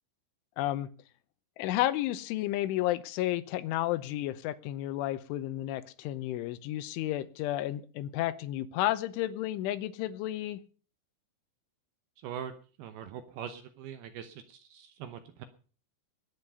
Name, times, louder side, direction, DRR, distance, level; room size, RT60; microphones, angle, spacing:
voice 1, 0.6-0.9 1.6-10.6, left 14 dB, 90° left, 13 dB, 3.4 m, -32 dB
voice 2, 12.2-15.5, right 8 dB, 75° right, 10 dB, 2.5 m, -42 dB
20.0 x 9.8 x 5.5 m, 0.40 s
omnidirectional pair, 5.5 m